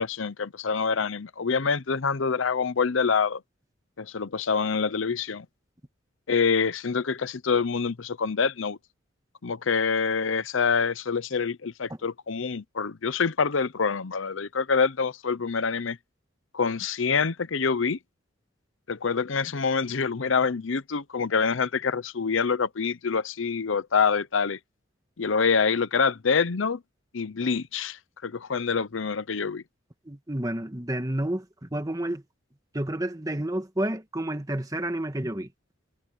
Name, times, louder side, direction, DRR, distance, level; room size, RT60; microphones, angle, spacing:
voice 1, 0.0-3.4 4.0-5.5 6.3-8.8 9.4-16.0 16.5-18.0 18.9-24.6 25.2-26.8 27.1-29.6, left 5 dB, 80° left, 0.7 m, -26 dB
voice 2, 30.1-32.2 32.7-35.5, right 1 dB, 20° right, 1.6 m, -30 dB
head